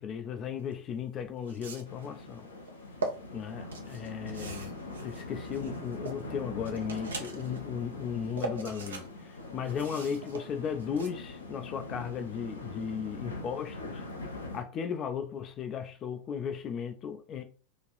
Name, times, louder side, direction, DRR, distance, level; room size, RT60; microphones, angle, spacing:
voice 1, 0.0-2.5 3.3-14.0 14.5-17.4, left 7 dB, 30° left, 0.4 m, -36 dB
sound 1, 0.7-0.8 1.4-2.1 2.7-3.1 3.7-6.2 6.6-7.6 8.0-9.1 9.3-11.1, right 3 dB, 70° right, 0.6 m, -40 dB
sound 2, 1.9-14.6, left 2 dB, 75° left, 0.8 m, -42 dB
3.1 x 2.5 x 4.0 m
figure-of-eight pair, 90°, 0 cm